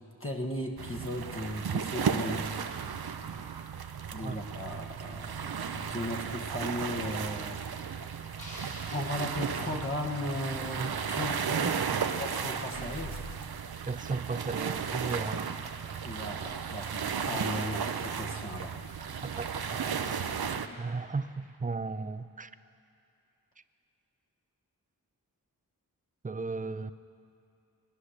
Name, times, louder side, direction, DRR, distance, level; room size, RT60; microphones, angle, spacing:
voice 1, 0.0-2.5 3.4-3.7 4.1-7.7 8.0-11.8 12.2-13.3 15.1-15.3 16.0-18.9, left 1 dB, 35° left, 1 dB, 1.5 m, -37 dB
sound 1, 0.8-20.7, right 6 dB, 70° right, 0.7 m, -34 dB
sound 2, 3.7-20.4, left 2 dB, 70° left, 1.9 m, -56 dB
sound 3, 8.4-10.7, left 1 dB, 55° left, 3.8 m, -50 dB
voice 2, 13.9-15.6 19.2-20.2 20.8-22.5 26.2-26.9, right 4 dB, 20° right, 13 dB, 0.5 m, -35 dB
20.5 x 9.9 x 6.5 m, 2.6 s
wide cardioid pair, 55°, 38 cm